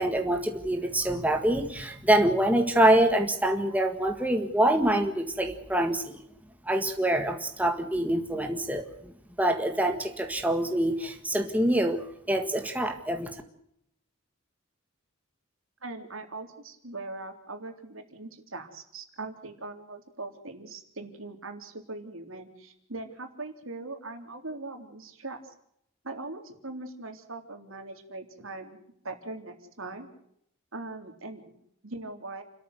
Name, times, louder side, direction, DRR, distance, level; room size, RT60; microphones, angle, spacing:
voice 1, 0.0-6.2 6.6-9.1 9.4-13.3, right 1 dB, 5° right, 5 dB, 1.8 m, -25 dB
voice 2, 15.8-25.4 26.0-28.8 29.0-30.1 30.7-31.5 31.8-32.4, right 2 dB, 70° right, 5 dB, 3.7 m, -40 dB
29.5 x 13.5 x 7.9 m, 0.74 s
head